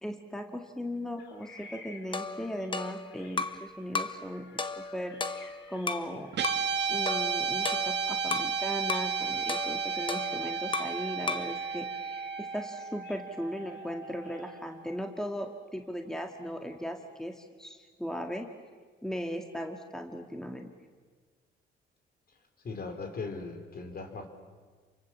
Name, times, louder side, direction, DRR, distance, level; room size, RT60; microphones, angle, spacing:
voice 1, 0.0-6.3 6.9-18.5 19.0-20.7, equal, 5° left, 4 dB, 2.0 m, -38 dB
sound 1, 1.2-14.6, left 4 dB, 65° left, 3.9 m, -55 dB
sound 2, 2.1-3.7 3.9-4.2 4.6-6.1 6.4-6.7 7.1-8.5 8.9-9.1 9.5-11.0 11.3-11.6, left 4 dB, 25° left, 1.3 m, -35 dB
Guitar, 6.3-14.8, right 6 dB, 60° right, 1.9 m, -33 dB
voice 2, 22.6-24.3, left 4 dB, 50° left, 5 dB, 4.0 m, -38 dB
28.5 x 24.0 x 7.3 m, 1.5 s
cardioid pair, 90°, 20 cm